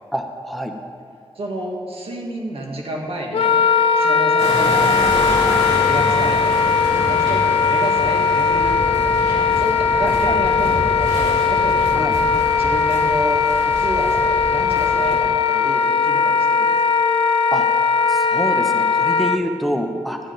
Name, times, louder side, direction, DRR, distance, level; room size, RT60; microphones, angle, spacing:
voice 1, 0.1-0.7 10.0-10.4 11.9-12.1 17.5-17.7 18.1-20.2, equal, ahead, 3 dB, 0.7 m, -26 dB
voice 2, 1.3-3.6 4.0-5.0 5.8-6.7 7.0-12.0 12.5-14.2 14.5-17.0, right 1 dB, 75° right, -1 dB, 1.7 m, -30 dB
Wind instrument woodwind instrument, 3.3-19.4, left 5 dB, 70° left, 0.5 m, -18 dB
sound 1, 4.4-15.2, equal, 40° right, 3.2 m, -28 dB
13.0 x 9.6 x 3.9 m, 2.3 s
wide cardioid pair, 150°, 10 cm